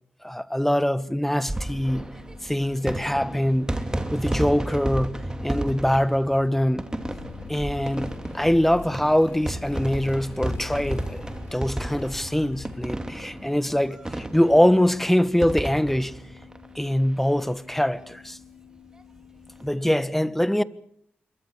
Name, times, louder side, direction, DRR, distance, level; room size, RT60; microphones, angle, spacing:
voice 1, 0.2-2.1 2.4-3.7 4.1-6.8 7.5-11.3 11.5-16.2 16.7-18.4 19.6-20.6, equal, 5° left, 1.4 m, -23 dB
sound 1, 0.9-19.8, left 11 dB, 50° left, 5.6 m, -52 dB
sound 2, 1.3-17.4 17.7-17.8 18.0-18.1 19.4-19.6, right 1 dB, 15° right, 3.0 m, -33 dB
sound 3, 7.0-13.1, left 4 dB, 80° left, 6.1 m, -42 dB
26.5 x 23.0 x 6.8 m
cardioid pair, 50°, 4 cm